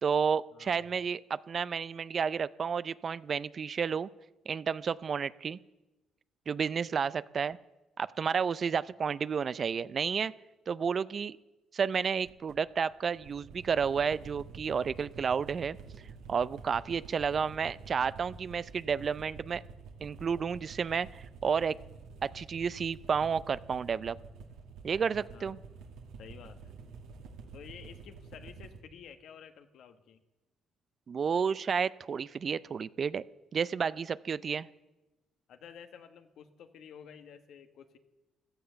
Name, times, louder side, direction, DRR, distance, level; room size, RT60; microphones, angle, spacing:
voice 1, 0.0-4.1 4.5-5.6 6.5-7.6 8.0-10.3 10.7-11.4 11.7-15.8 16.3-19.6 20.0-21.8 22.2-24.2 24.8-25.6 31.1-33.2 33.5-34.7, right 6 dB, 45° right, 17 dB, 0.5 m, -31 dB
voice 2, 0.5-0.9 25.3-25.6 26.2-26.7 27.5-30.2 35.5-38.0, left 7 dB, 70° left, 8 dB, 1.3 m, -51 dB
sound 1, 12.3-28.8, right 4 dB, 80° right, 2.0 m, -49 dB
16.0 x 12.5 x 6.9 m, 1.0 s
cardioid pair, 85°, 0 cm